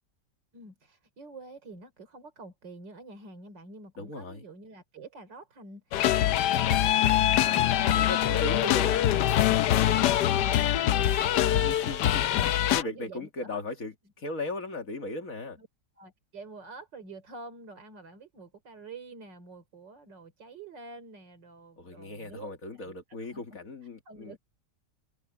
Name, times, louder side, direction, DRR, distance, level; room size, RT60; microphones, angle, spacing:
voice 1, 0.5-12.1 12.7-13.6 15.6-15.7 16.0-22.6 23.1-23.4 24.1-24.4, right 3 dB, 85° right, 4.1 m, -47 dB
voice 2, 4.0-4.4 7.7-9.0 11.6-15.6 21.8-24.4, left 2 dB, 50° left, 2.4 m, -37 dB
sound 1, 5.9-12.8, left 12 dB, 75° left, 1.2 m, -24 dB
omnidirectional pair, 1.9 m